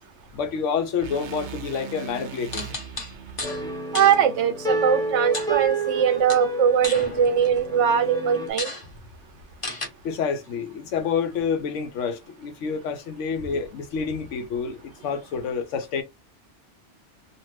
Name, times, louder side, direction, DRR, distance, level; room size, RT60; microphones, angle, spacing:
voice 1, 0.3-2.7 10.0-16.0, left 6 dB, 80° left, 1.0 m, -28 dB
sound 1, 1.0-5.2, right 7 dB, 60° right, 0.5 m, -40 dB
sound 2, 2.5-3.6 3.9-4.2 5.3-6.0 6.3-7.7 8.1-8.2 8.6-8.8 9.6-9.9, left 2 dB, 30° left, 0.8 m, -33 dB
sound 3, 3.4-8.5, right 2 dB, 5° left, 0.5 m, -29 dB
voice 2, 3.9-8.7, right 8 dB, 75° right, 0.9 m, -21 dB
2.6 x 2.4 x 3.2 m
omnidirectional pair, 1.2 m